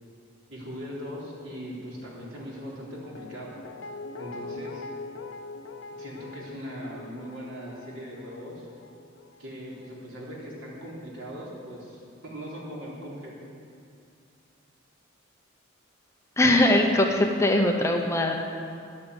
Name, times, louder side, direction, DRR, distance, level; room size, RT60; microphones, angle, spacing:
voice 1, 0.5-3.5 4.2-4.8 6.0-8.7 9.4-13.3, equal, 75° right, -5 dB, 3.7 m, -39 dB
Guitar, 3.1-10.2 10.5-10.6, left 3 dB, 70° left, 0.7 m, -43 dB
voice 2, 16.4-18.4, left 1 dB, 15° left, 2 dB, 0.9 m, -21 dB
11.0 x 8.6 x 8.3 m, 2.4 s
head